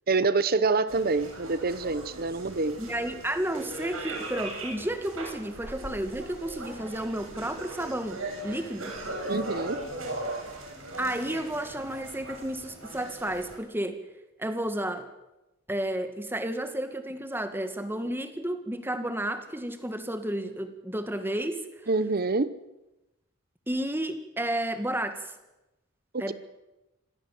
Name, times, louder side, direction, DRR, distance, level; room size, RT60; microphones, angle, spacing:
voice 1, 0.1-2.8 9.3-9.8 21.9-22.6 26.1-26.3, right 3 dB, 50° right, 15 dB, 0.9 m, -26 dB
sound 1, 0.9-13.6, right 2 dB, 85° right, 7.6 m, -39 dB
voice 2, 2.8-8.9 11.0-14.0 14.4-15.1 15.7-21.6 23.7-25.3 26.2-26.3, right 1 dB, 10° right, 8 dB, 2.0 m, -32 dB
26.5 x 17.5 x 7.8 m, 0.98 s
head